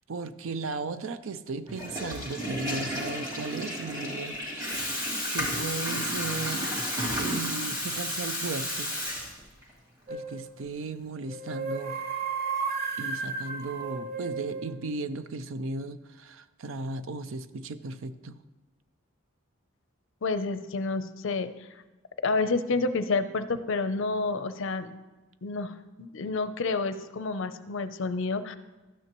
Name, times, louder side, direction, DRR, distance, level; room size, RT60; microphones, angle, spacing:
voice 1, 0.1-5.0 5.3-6.7 7.2-9.3 10.1-12.1 13.0-18.4, right 3 dB, 70° right, 13 dB, 0.5 m, -36 dB
Water tap faucet / Toilet flush, 1.7-9.7, equal, 20° right, 2.6 m, -32 dB
sound 1, 10.1-10.5 11.3-14.7, right 5 dB, 45° right, 1.1 m, -33 dB
voice 2, 20.2-21.5 22.2-24.9 25.4-28.6, left 3 dB, 65° left, 11 dB, 0.6 m, -29 dB
12.5 x 9.4 x 3.0 m, 1.1 s
head